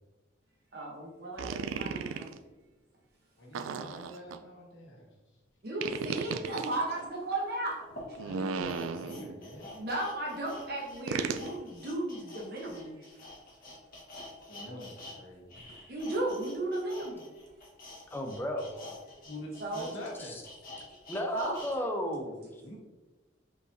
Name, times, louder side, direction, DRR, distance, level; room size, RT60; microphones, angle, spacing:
voice 1, 0.7-2.3 5.6-7.8 9.8-13.1 15.6-17.3 19.6-19.9 21.3-21.5, right 1 dB, 55° right, -2 dB, 0.8 m, -35 dB
sound 1, 1.4-2.4 3.5-4.4 5.8-6.7 8.1-9.4 11.1-11.5, right 5 dB, 85° right, 0.3 m, -35 dB
voice 2, 3.4-5.1 8.2-9.9 14.4-15.7 19.2-20.4 22.6-22.8, left 1 dB, 70° left, -3 dB, 1.0 m, -45 dB
sound 2, 7.0-7.1 7.8-15.2 15.4-21.7 22.1-22.2, left 2 dB, 45° left, 1.2 m, -48 dB
voice 3, 18.1-18.8 20.2-20.4 21.1-22.6, equal, 10° left, 1 dB, 0.5 m, -34 dB
5.1 x 4.0 x 2.6 m, 1.2 s
head